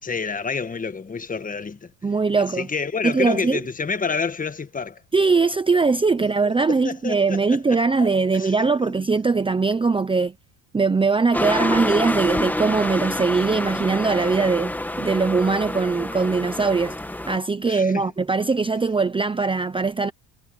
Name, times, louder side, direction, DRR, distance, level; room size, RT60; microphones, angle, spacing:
voice 1, 0.0-1.9 2.4-5.0 6.1-8.9 17.6-18.0, left 5 dB, 20° left, 1.6 m, -29 dB
voice 2, 2.0-2.7 3.0-3.6 5.1-10.3 10.7-17.0 17.3-20.1, right 4 dB, 10° right, 0.9 m, -21 dB
sound 1, 11.3-17.4, left 1 dB, 5° left, 1.4 m, -27 dB
supercardioid pair, 110°, 41 cm